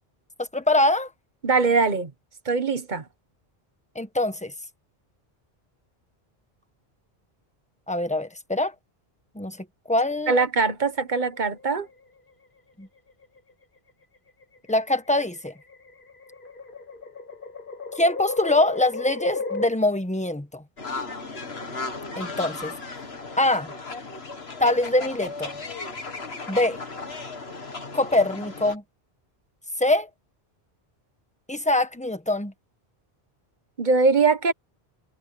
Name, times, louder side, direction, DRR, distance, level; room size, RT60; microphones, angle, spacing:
voice 1, 0.5-1.1 3.9-4.5 7.9-8.7 9.3-9.6 9.9-10.3 12.8-12.9 14.7-15.5 18.0-20.6 22.2-22.7 23.4-23.7 24.6-25.5 26.5-26.8 27.9-28.8 29.8-30.1 31.5-32.5, left 1 dB, 5° left, 1.3 m, -23 dB
voice 2, 1.4-2.1 2.4-3.0 10.3-11.9 33.8-34.5, right 4 dB, 45° right, 1.5 m, -22 dB
sound 1, 11.1-11.9 13.1-13.5 14.4-19.7, left 3 dB, 55° left, 1.6 m, -35 dB
sound 2, 20.8-28.7, left 3 dB, 80° left, 2.4 m, -35 dB
omnidirectional pair, 1.1 m